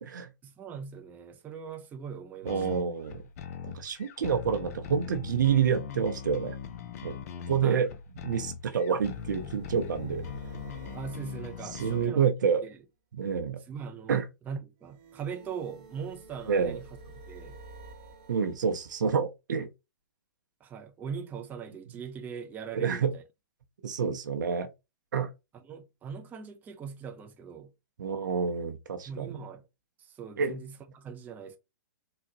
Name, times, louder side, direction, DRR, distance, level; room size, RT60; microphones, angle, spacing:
voice 1, 0.4-2.8 7.6-7.9 10.9-12.3 12.6-12.8 13.7-14.2 14.5-16.9 17.3-17.6 20.6-23.2 25.5-27.7 29.1-29.7 30.0-31.6, right 6 dB, 15° right, 0.5 m, -40 dB
voice 2, 2.4-3.2 3.6-6.5 7.0-7.1 7.5-7.9 8.2-10.2 11.8-12.6 13.1-13.6 14.1-14.2 16.5-16.8 18.3-19.7 22.7-23.1 23.8-24.7 25.1-25.3 28.0-29.4 30.4-30.5, right 6 dB, 70° right, 0.7 m, -28 dB
sound 1, 2.5-12.1, left 7 dB, 50° left, 0.5 m, -41 dB
sound 2, 8.9-12.5 14.8-19.2, right 2 dB, 40° right, 1.0 m, -50 dB
3.9 x 2.1 x 2.7 m
hypercardioid pair, 115°, 10 cm